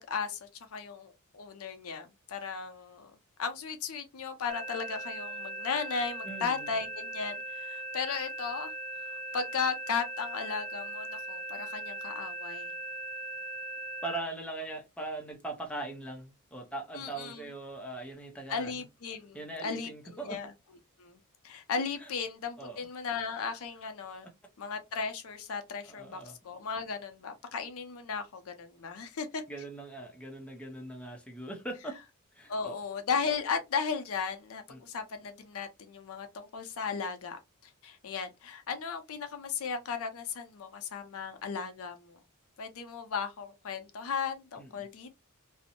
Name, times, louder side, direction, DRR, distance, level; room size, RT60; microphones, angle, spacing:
voice 1, 0.0-3.1 3.4-8.7 9.3-12.7 16.9-17.5 18.5-20.5 21.0-21.2 21.4-24.3 24.6-29.4 32.5-37.4 37.8-42.2 42.6-45.2, left 5 dB, 65° left, 0.5 m, -36 dB
sound 1, 4.5-14.2, right 2 dB, 45° right, 1.3 m, -39 dB
voice 2, 6.2-6.8 14.0-18.7 19.3-20.4 22.0-22.1 22.6-22.9 25.9-26.4 29.5-32.0 32.3-32.8 34.7-34.8 44.6-44.9, right 2 dB, 5° left, 0.5 m, -40 dB
2.5 x 2.0 x 2.7 m
head